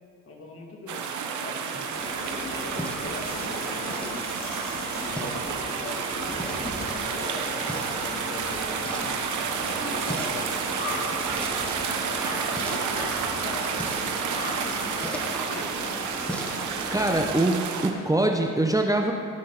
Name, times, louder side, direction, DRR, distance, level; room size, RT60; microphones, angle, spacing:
voice 1, 0.2-1.1 1.4-1.9 2.2-4.3 5.0-9.2 9.6-14.3 14.6-15.7, left 2 dB, 45° left, 0 dB, 2.2 m, -41 dB
sound 1, 0.9-17.9, right 6 dB, 75° right, 1.1 m, -30 dB
sound 2, 1.7-16.9, equal, 5° left, 1.2 m, -42 dB
sound 3, 1.9-17.3, left 1 dB, 30° left, 2.6 m, -37 dB
voice 2, 16.9-19.1, right 2 dB, 10° right, 2 dB, 0.7 m, -23 dB
17.0 x 6.1 x 4.4 m, 2.7 s
cardioid pair, 90°, 30 cm